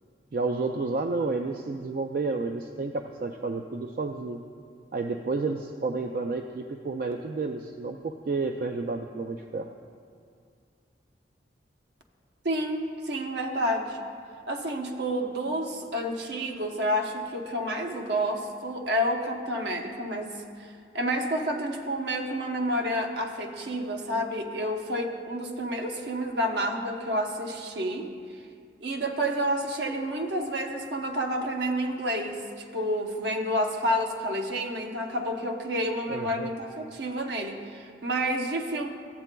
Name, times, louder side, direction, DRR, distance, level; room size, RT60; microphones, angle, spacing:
voice 1, 0.3-4.4 4.9-9.7 36.1-36.5, right 3 dB, 50° right, 5 dB, 0.3 m, -31 dB
voice 2, 12.4-14.0 14.5-28.1 28.8-32.4 32.7-38.9, equal, 70° right, 3 dB, 0.8 m, -29 dB
15.0 x 8.1 x 2.2 m, 2.2 s
head